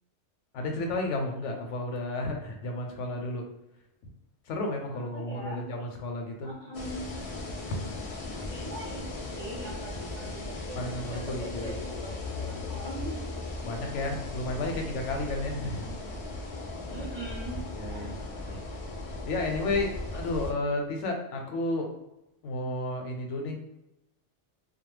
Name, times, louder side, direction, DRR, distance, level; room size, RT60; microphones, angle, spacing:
voice 1, 0.5-3.4 4.5-6.5 7.7-7.8 10.7-11.7 13.6-15.9 16.9-17.0 17.7-18.2 19.3-21.9 22.4-23.6, left 2 dB, 85° left, 2 dB, 0.9 m, -32 dB
voice 2, 4.9-5.8 6.4-7.1 8.5-9.1 9.3-13.2 15.6-16.2 16.9-18.8, right 2 dB, 45° right, -5 dB, 0.6 m, -42 dB
sound 1, 6.7-20.5, left 2 dB, 60° left, 0.3 m, -37 dB
2.3 x 2.0 x 3.1 m, 0.90 s
omnidirectional pair, 1.2 m